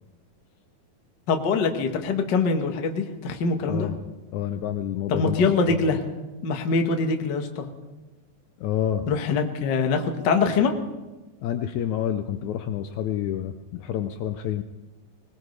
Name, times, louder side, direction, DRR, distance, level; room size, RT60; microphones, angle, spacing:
voice 1, 1.3-3.9 5.1-6.0 6.4-7.7 9.1-10.7, left 4 dB, 50° left, 4 dB, 1.3 m, -23 dB
voice 2, 3.7-4.0 4.3-6.0 8.6-9.1 11.4-14.6, left 10 dB, 75° left, 8 dB, 1.9 m, -28 dB
20.5 x 20.5 x 3.3 m, 1.1 s
omnidirectional pair, 3.8 m